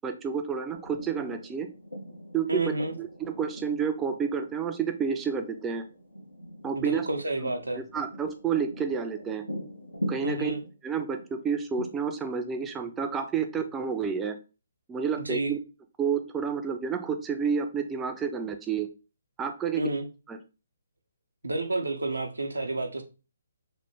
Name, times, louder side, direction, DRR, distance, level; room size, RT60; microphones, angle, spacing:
voice 1, 0.0-1.7 2.3-5.8 6.6-7.1 7.4-9.4 10.1-10.5 10.8-14.4 14.9-15.6 16.0-18.9 19.4-19.8 20.3-20.4, right 6 dB, 15° right, 6 dB, 0.4 m, -30 dB
sound 1, 0.7-13.8, equal, 90° left, 1.0 m, -43 dB
voice 2, 2.5-2.9 6.8-7.8 10.2-10.6 15.3-15.5 19.8-20.1 21.4-23.0, right 2 dB, 85° right, 5 dB, 0.6 m, -29 dB
3.1 x 2.1 x 3.1 m, 0.32 s
figure-of-eight pair, 140°, 0 cm